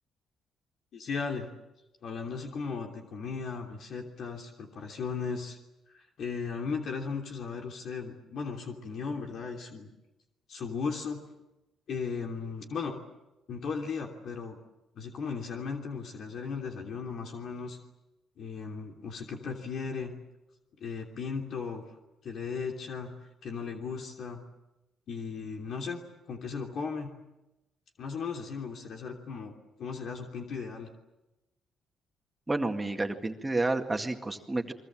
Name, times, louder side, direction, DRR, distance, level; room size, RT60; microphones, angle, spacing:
voice 1, 0.9-1.5 2.0-5.6 5.9-9.9 10.5-11.2 11.9-13.0 13.5-14.6 14.9-17.8 18.4-20.1 20.8-21.8 22.2-23.1 23.4-24.4 25.1-26.0 26.3-27.1 28.0-29.5 29.8-30.9, left 5 dB, 65° left, 2 dB, 3.1 m, -36 dB
voice 2, 32.5-34.7, right 2 dB, 15° right, 4 dB, 2.0 m, -30 dB
29.5 x 22.5 x 7.6 m, 0.99 s
cardioid pair, 90°, 0 cm